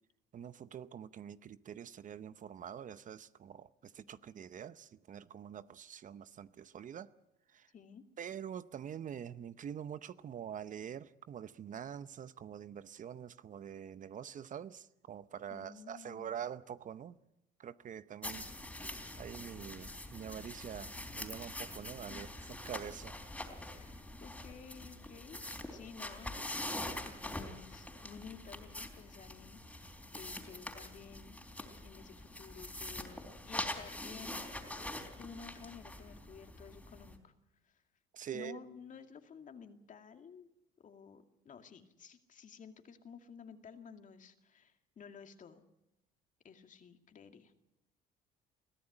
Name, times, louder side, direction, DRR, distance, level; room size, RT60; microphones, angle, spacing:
voice 1, 0.3-7.1 7.5-7.7 8.2-17.2 17.6-18.5 19.2-22.3 22.6-23.2 38.1-38.6, right 9 dB, 45° right, 0.8 m, -45 dB
voice 2, 7.7-8.0 15.5-16.4 22.1-22.7 23.7-25.4 25.7-37.3 37.6-37.8 38.3-40.5 40.8-45.6 46.4-47.5, left 6 dB, 45° left, 2.3 m, -53 dB
sound 1, 18.2-37.2, left 1 dB, 5° left, 3.7 m, -44 dB
22.5 x 14.5 x 9.9 m
cardioid pair, 95°, 18 cm